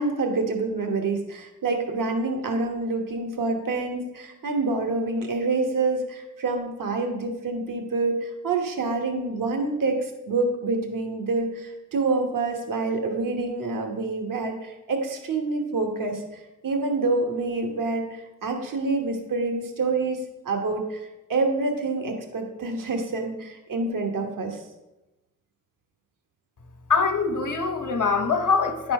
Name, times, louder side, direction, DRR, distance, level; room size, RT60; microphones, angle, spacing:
voice 1, 0.0-20.2 20.4-24.6, right 3 dB, 85° right, 3 dB, 1.2 m, -27 dB
voice 2, 26.9-28.9, left 4 dB, 70° left, 7 dB, 1.1 m, -23 dB
10.0 x 4.3 x 5.3 m, 0.99 s
cardioid pair, 55°, 32 cm